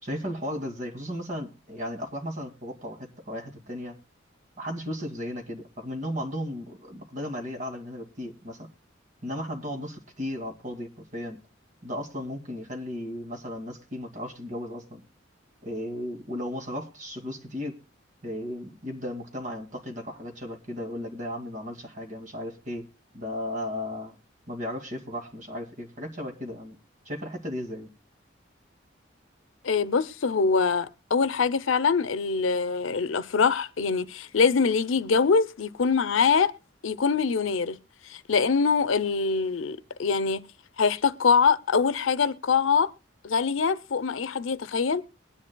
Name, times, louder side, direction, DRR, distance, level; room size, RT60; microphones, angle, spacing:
voice 1, 0.0-3.9 4.6-8.7 9.2-11.4 11.8-15.0 15.6-17.8 18.2-22.9 23.1-24.2 24.5-26.8 27.1-27.9, left 1 dB, 40° right, 2.2 m, -35 dB
voice 2, 29.6-36.5 36.8-37.8 38.1-40.4 40.8-42.9 43.2-45.0, left 5 dB, 85° left, 0.6 m, -24 dB
22.0 x 10.0 x 2.2 m
head